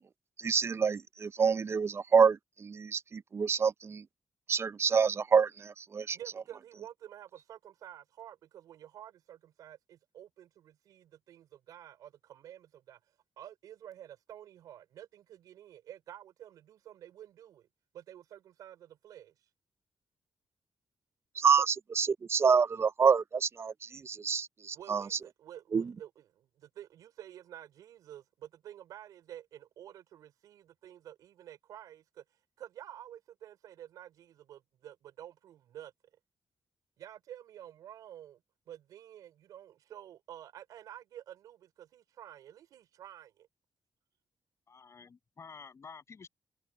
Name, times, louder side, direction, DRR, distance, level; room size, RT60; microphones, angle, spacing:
voice 1, 0.4-4.0 4.5-6.2 21.4-25.0 25.7-25.9, right 6 dB, 45° right, 0.5 m, -27 dB
voice 2, 6.1-13.0 13.4-17.7 17.9-19.3 21.6-21.7 24.7-32.2 32.6-35.9 37.0-38.4 38.7-43.5, right 11 dB, 90° right, 5.3 m, -50 dB
voice 3, 44.7-46.3, left 5 dB, 50° left, 7.8 m, -50 dB
cardioid pair, 65°, 6 cm